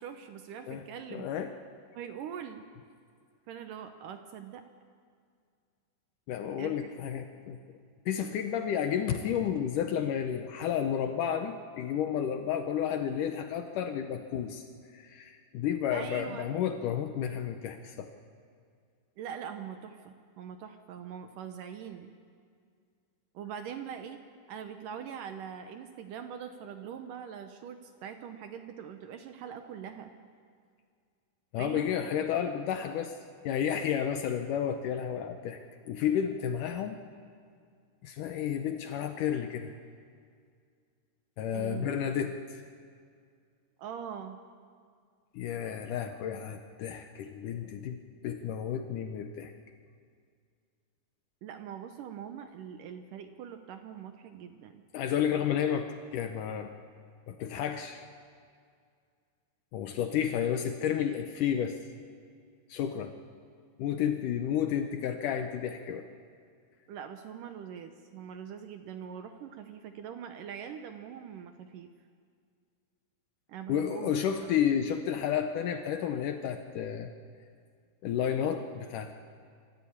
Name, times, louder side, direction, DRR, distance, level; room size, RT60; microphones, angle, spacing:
voice 1, 0.0-1.3 1.9-2.7 3.5-4.6 6.6-6.8 15.9-16.5 19.2-22.1 23.3-24.2 24.5-30.1 31.6-31.9 41.5-41.9 42.2-42.3 43.8-44.4 51.4-54.8 66.9-71.9 73.5-74.6, right 8 dB, 75° right, 7 dB, 2.0 m, -42 dB
voice 2, 1.1-1.5 6.3-7.6 8.1-14.7 14.9-18.1 31.5-33.1 33.4-37.0 38.0-39.7 41.4-42.6 45.3-49.5 54.9-55.9 56.1-56.7 57.3-58.0 59.7-61.8 62.7-63.1 63.8-66.0 73.7-77.1 78.0-79.1, left 9 dB, 80° left, 6 dB, 1.8 m, -31 dB
25.0 x 14.5 x 8.7 m, 2.2 s
omnidirectional pair, 4.8 m